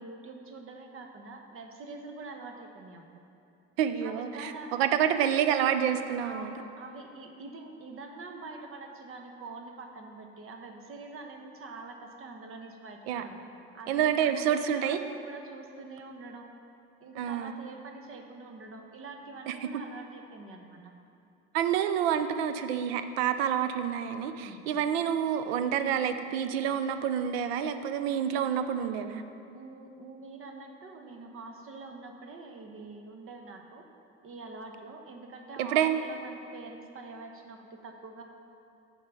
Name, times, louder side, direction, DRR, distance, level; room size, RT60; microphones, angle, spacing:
voice 1, 0.0-3.0 4.0-4.8 6.2-13.4 13.7-16.5 17.0-20.8 24.3-24.7 29.5-33.9 34.2-38.2, right 3 dB, 45° right, 3 dB, 1.0 m, -45 dB
voice 2, 3.8-6.5 13.1-13.2 13.9-15.0 17.2-17.5 19.5-19.6 21.5-29.2 35.6-36.0, right 9 dB, 90° right, 10 dB, 0.5 m, -28 dB
7.4 x 4.7 x 6.8 m, 2.6 s
supercardioid pair, 80°, 30 cm